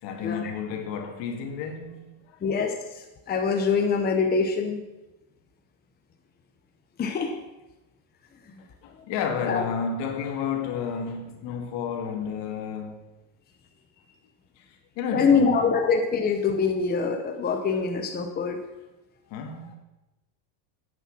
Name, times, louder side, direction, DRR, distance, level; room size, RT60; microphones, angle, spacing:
voice 1, 0.0-2.4 8.8-13.0 14.6-14.7 15.0-15.5 19.3-19.8, left 6 dB, 60° left, 2.1 m, -31 dB
voice 2, 2.4-2.7 3.3-4.8 7.0-7.3 9.5-9.6 15.1-18.6, left 5 dB, 20° left, 1.0 m, -24 dB
9.7 x 8.6 x 6.2 m
cardioid pair, 150°, 48 cm